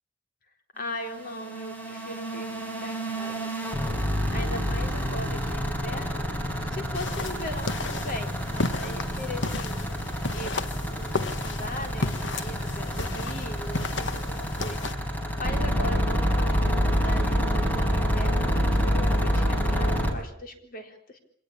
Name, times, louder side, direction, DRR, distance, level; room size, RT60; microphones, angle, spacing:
voice 1, 0.8-3.8 4.3-9.8 10.3-14.8 15.4-16.8 17.0-21.2, left 1 dB, 50° left, 5 dB, 4.1 m, -39 dB
sound 1, 0.8-20.1, equal, 10° left, 5.0 m, -28 dB
sound 2, 6.9-14.9, left 3 dB, 70° left, 1.5 m, -33 dB
25.5 x 18.5 x 8.7 m, 0.63 s
head